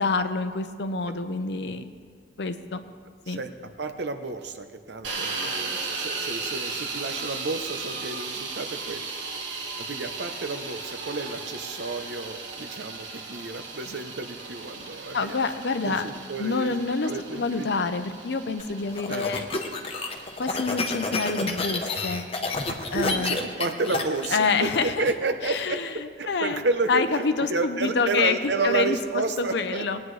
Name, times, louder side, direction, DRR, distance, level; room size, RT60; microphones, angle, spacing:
voice 1, 0.0-1.8 2.4-2.8 3.3-3.4 15.1-16.1 16.4-19.5 20.4-22.2 22.9-23.4 24.3-25.1 25.4-26.6 26.9-30.0, left 4 dB, 65° left, 10 dB, 0.7 m, -27 dB
voice 2, 3.8-9.1 9.8-15.4 15.8-16.7 17.0-17.9 19.1-19.3 22.7-29.8, right 3 dB, 65° right, 8 dB, 0.8 m, -31 dB
sound 1, 5.0-23.0, right 4 dB, 90° right, 1.3 m, -36 dB
sound 2, 18.6-25.1, left 3 dB, 35° left, 0.9 m, -30 dB
19.5 x 9.4 x 3.2 m, 2.1 s
head